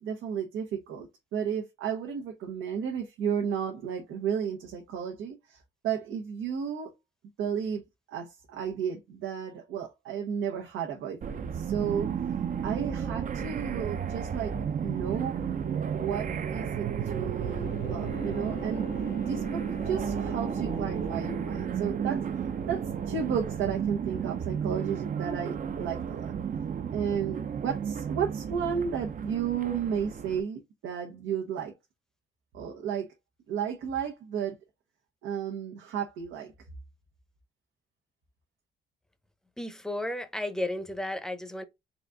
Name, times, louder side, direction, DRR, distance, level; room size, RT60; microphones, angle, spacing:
voice 1, 0.0-6.9 7.4-7.8 8.1-12.1 12.6-14.5 14.8-15.4 15.9-18.9 19.3-26.3 26.9-31.7 32.5-33.1 33.5-34.5 35.2-36.5, right 7 dB, 90° right, 1.0 m, -33 dB
sound 1, 11.2-30.4, right 7 dB, 40° right, 0.6 m, -33 dB
Bowed string instrument, 17.4-22.1, left 6 dB, 50° left, 0.7 m, -44 dB
voice 2, 39.6-41.6, left 1 dB, 5° left, 0.7 m, -33 dB
4.1 x 2.6 x 3.4 m
cardioid pair, 90°, 20 cm